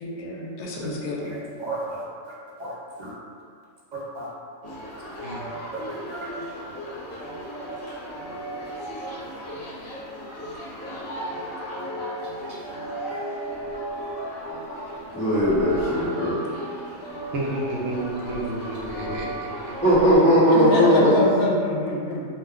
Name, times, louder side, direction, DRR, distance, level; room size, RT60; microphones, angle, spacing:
voice 1, 0.0-1.4 20.5-22.3, left 1 dB, 75° left, -2 dB, 0.9 m, -26 dB
voice 2, 1.2-3.1 3.9-4.3 5.7-6.3 13.1-13.2, right 2 dB, 45° right, -7 dB, 0.6 m, -35 dB
sound 1, 4.6-20.2, right 1 dB, 45° left, 0.9 m, -35 dB
voice 3, 15.1-16.4 19.8-21.1, equal, 5° left, -14 dB, 0.7 m, -18 dB
voice 4, 17.3-19.5, right 1 dB, 70° right, -3 dB, 0.9 m, -30 dB
2.6 x 2.2 x 3.5 m, 2.2 s
omnidirectional pair, 1.5 m